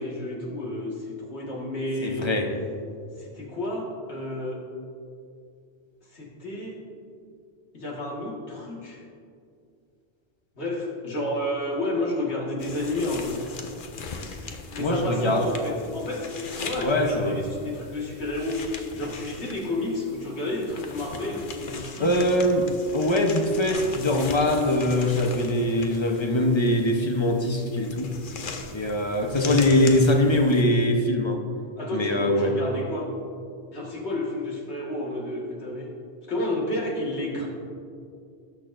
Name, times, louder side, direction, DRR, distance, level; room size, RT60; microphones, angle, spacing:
voice 1, 0.0-2.3 3.2-4.6 6.1-6.8 7.7-9.0 10.6-13.4 14.7-18.7 19.0-22.1 31.8-33.1 33.7-35.9 36.3-37.5, left 1 dB, 85° left, -3 dB, 2.0 m, -31 dB
voice 2, 2.0-2.5 14.8-15.5 16.8-17.4 22.0-28.1 28.7-31.4 31.9-32.5, left 1 dB, 30° left, 3 dB, 0.8 m, -22 dB
sound 1, 12.6-30.6, left 4 dB, 55° left, 0.9 m, -40 dB
18.5 x 6.5 x 2.6 m, 2.4 s
omnidirectional pair, 1.1 m